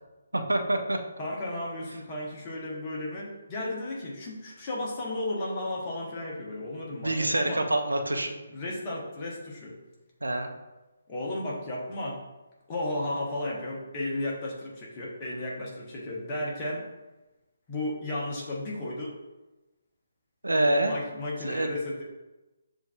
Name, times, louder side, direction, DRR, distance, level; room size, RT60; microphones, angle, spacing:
voice 1, 0.3-1.0 7.0-8.4 10.2-10.5 20.4-20.9 21.4-21.7, right 1 dB, 75° right, 5 dB, 0.5 m, -26 dB
voice 2, 1.2-7.6 8.5-9.8 11.1-12.2 12.7-16.9 17.7-19.2 20.9-22.0, left 1 dB, 25° left, -4 dB, 1.0 m, -34 dB
6.9 x 2.6 x 2.3 m, 1.1 s
figure-of-eight pair, 145°, 0 cm